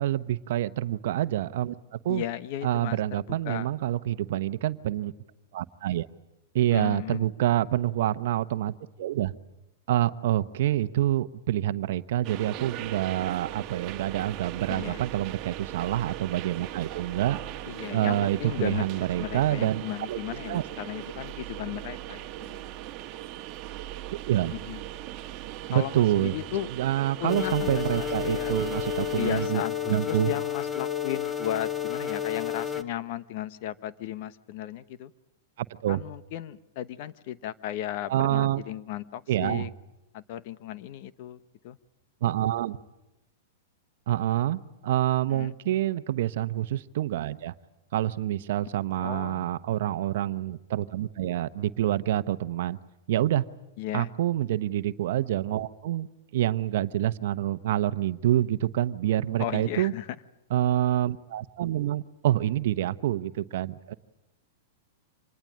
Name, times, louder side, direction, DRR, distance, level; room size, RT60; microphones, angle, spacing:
voice 1, 0.0-2.2 2.6-5.1 5.5-6.1 6.5-9.3 9.9-17.4 17.9-19.8 20.1-20.2 20.5-20.6 24.3-24.5 25.7-26.3 26.8-29.6 29.9-30.3 35.6-36.0 38.1-38.6 39.3-39.7 42.2-42.8 44.1-47.5 47.9-52.8 53.1-53.4 53.9-56.1 56.3-59.9 60.5-63.9, right 13 dB, 65° right, 13 dB, 0.9 m, -27 dB
voice 2, 2.1-3.7 6.7-7.2 14.7-15.0 17.7-18.8 19.2-22.6 24.5-24.8 25.7-26.7 27.2-28.5 29.2-35.1 35.9-39.7 40.1-41.4 41.6-41.8 45.3-45.5 49.0-49.5 53.8-54.1 59.4-60.1, left 12 dB, 50° left, 14 dB, 1.1 m, -35 dB
sound 1, 12.2-29.5, right 13 dB, 35° right, 1.6 m, -39 dB
sound 2, 27.3-32.8, left 10 dB, 10° left, 1.3 m, -31 dB
26.0 x 20.0 x 8.7 m, 0.94 s
hypercardioid pair, 135°, 0 cm